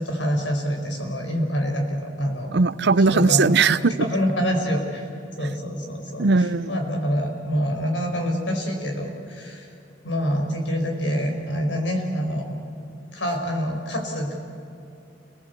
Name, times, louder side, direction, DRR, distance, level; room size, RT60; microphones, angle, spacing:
voice 1, 0.0-2.5 3.1-3.5 4.0-5.1 5.4-9.7 10.0-12.4 13.1-14.4, equal, 90° left, 3 dB, 5.1 m, -26 dB
voice 2, 2.5-3.9 6.2-6.8, right 4 dB, 65° right, 17 dB, 0.6 m, -19 dB
29.5 x 19.0 x 8.3 m, 2.6 s
head